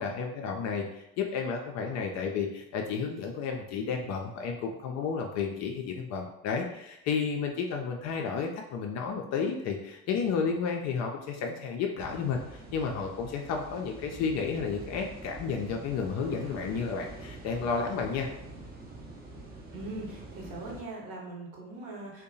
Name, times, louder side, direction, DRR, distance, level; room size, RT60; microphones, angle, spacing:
voice 1, 0.0-18.3, left 5 dB, 40° left, 2 dB, 0.4 m, -32 dB
sound 1, 12.0-20.8, right 2 dB, 20° right, 0.6 m, -45 dB
voice 2, 19.7-22.2, right 2 dB, 50° right, -2 dB, 1.0 m, -41 dB
2.6 x 2.2 x 2.6 m, 0.84 s
figure-of-eight pair, 60°, 43 cm